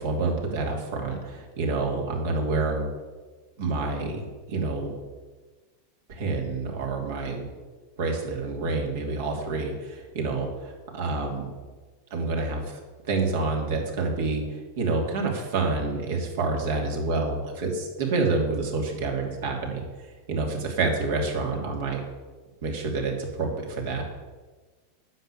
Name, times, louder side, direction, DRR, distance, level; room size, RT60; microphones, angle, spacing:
voice 1, 0.0-2.9 3.6-4.9 6.1-7.4 8.0-11.5 12.1-12.8 13.1-14.4 14.8-19.8 20.3-22.0 22.6-24.1, right 3 dB, 65° right, 1 dB, 3.0 m, -28 dB
9.8 x 6.9 x 8.7 m, 1.3 s
hypercardioid pair, 90°, 0 cm